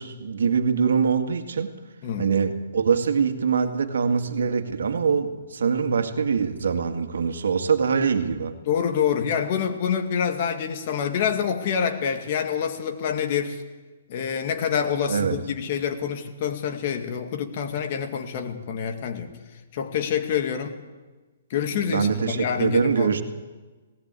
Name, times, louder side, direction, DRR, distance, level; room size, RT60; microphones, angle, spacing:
voice 1, 0.0-1.7 2.2-8.5 15.1-15.4 21.9-23.2, right 6 dB, 85° right, 7 dB, 2.1 m, -23 dB
voice 2, 8.7-13.6 14.1-19.3 19.7-20.8 21.5-23.2, left 7 dB, 45° left, 6 dB, 2.2 m, -26 dB
18.5 x 18.0 x 8.3 m, 1.3 s
hypercardioid pair, 160°, 0 cm